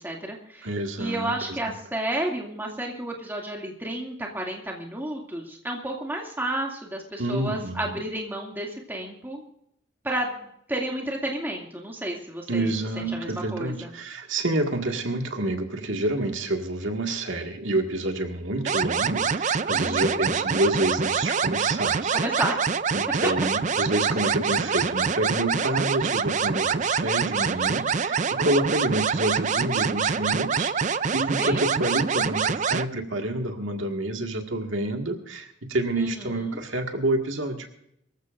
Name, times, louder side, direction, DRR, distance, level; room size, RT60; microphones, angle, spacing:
voice 1, 0.0-0.7 1.0-9.4 10.0-10.3 10.7-12.7 13.1-13.9 19.8-20.1 22.1-22.6 27.4-28.1 31.4-31.7 36.0-36.6, right 1 dB, 10° right, -1 dB, 2.4 m, -31 dB
voice 2, 0.6-1.7 7.2-8.0 12.5-22.2 22.9-37.7, right 1 dB, 75° right, 3 dB, 1.9 m, -28 dB
sound 1, 18.7-32.8, right 5 dB, 35° right, 0.4 m, -25 dB
24.0 x 14.5 x 2.6 m, 0.73 s
head